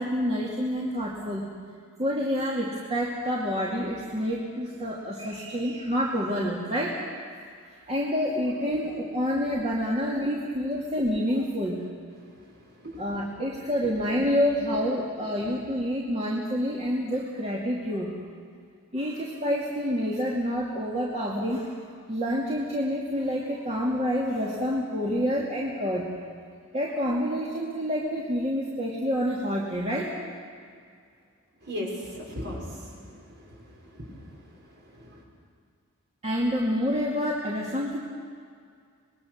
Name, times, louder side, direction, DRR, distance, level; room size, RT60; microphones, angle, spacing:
voice 1, 0.0-1.4 2.0-7.2 7.9-11.8 13.0-18.2 18.9-21.7 22.1-26.1 26.7-30.1 36.2-38.0, equal, 30° right, -4 dB, 2.4 m, -28 dB
voice 2, 12.3-13.0 31.6-35.2, left 1 dB, 50° right, -2 dB, 5.9 m, -39 dB
26.0 x 21.0 x 6.4 m, 2.2 s
head